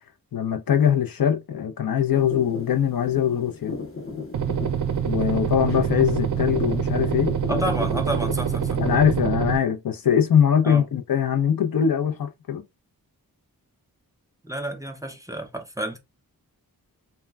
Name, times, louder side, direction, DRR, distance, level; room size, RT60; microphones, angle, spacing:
voice 1, 0.3-3.7 5.0-7.3 8.8-12.6, left 8 dB, 70° left, 0.6 m, -22 dB
sound 1, 2.1-9.0, left 3 dB, 35° left, 0.8 m, -35 dB
sound 2, 4.3-9.6, right 8 dB, 60° right, 0.5 m, -25 dB
voice 2, 7.5-8.8 10.6-10.9 14.4-16.0, right 1 dB, 10° right, 0.5 m, -30 dB
2.2 x 2.1 x 3.4 m
wide cardioid pair, 70°, 36 cm